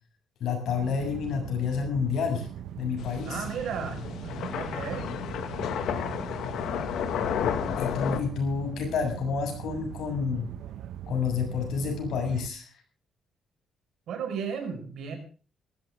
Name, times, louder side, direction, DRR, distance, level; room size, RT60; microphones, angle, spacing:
voice 1, 0.4-2.5 2.8-3.4 7.8-10.5 11.1-12.6, left 6 dB, 70° left, 3 dB, 7.4 m, -29 dB
sound 1, 0.7-12.5, right 11 dB, 85° right, 1.0 m, -40 dB
sound 2, 3.0-8.2, left 9 dB, 85° left, 1.9 m, -32 dB
voice 2, 3.2-5.1 14.1-15.2, right 7 dB, 65° right, 6 dB, 5.0 m, -34 dB
19.0 x 15.0 x 3.6 m, 0.37 s
cardioid pair, 160°, 0 cm